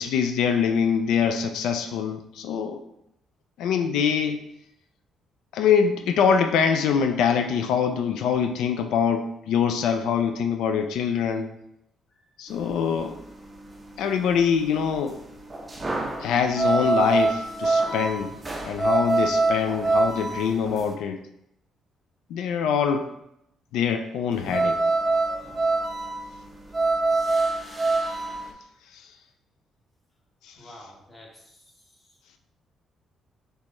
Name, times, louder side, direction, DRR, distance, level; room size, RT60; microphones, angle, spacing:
voice 1, 0.0-2.8 3.6-4.4 5.5-11.5 12.4-13.2 14.0-15.2 16.2-18.4 18.6-21.2 22.3-23.1 23.7-24.8 28.9-29.0 30.5-30.6, left 7 dB, 90° left, 7 dB, 0.3 m, -24 dB
sound 1, 12.5-20.9 24.3-28.5, right 3 dB, 15° right, 0.4 m, -25 dB
voice 2, 30.6-32.1, left 1 dB, 20° left, -1 dB, 0.9 m, -49 dB
4.3 x 3.3 x 3.0 m, 0.81 s
cardioid pair, 175°, 0 cm